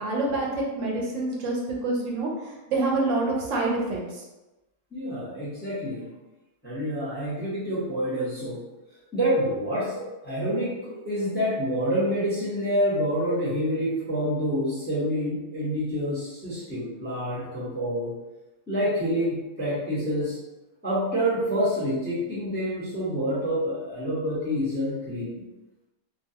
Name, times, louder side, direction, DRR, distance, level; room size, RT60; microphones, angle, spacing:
voice 1, 0.0-2.3 2.7-4.0, right 2 dB, 75° right, -3 dB, 1.0 m, -26 dB
voice 2, 4.9-6.1 6.6-8.6 9.1-18.1 18.7-20.4 20.8-25.4, equal, 10° left, -10 dB, 0.7 m, -27 dB
2.4 x 2.3 x 2.7 m, 1.1 s
omnidirectional pair, 1.4 m